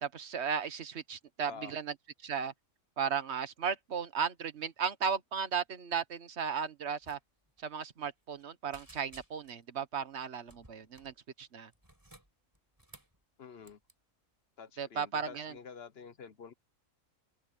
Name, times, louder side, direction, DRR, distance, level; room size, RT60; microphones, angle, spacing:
voice 1, 0.0-1.9 2.2-2.5 3.0-7.2 7.6-11.7 14.8-15.5, right 6 dB, 55° right, 1.4 m, -35 dB
sound 1, 7.0-7.2 7.5-7.6 8.0-8.4 8.7-9.6 10.5-11.2 11.7-13.2 13.6-13.9, right 1 dB, 15° right, 5.0 m, -57 dB
voice 2, 13.4-13.8 14.6-16.5, left 6 dB, 50° left, 1.2 m, -48 dB
omnidirectional pair, 1.4 m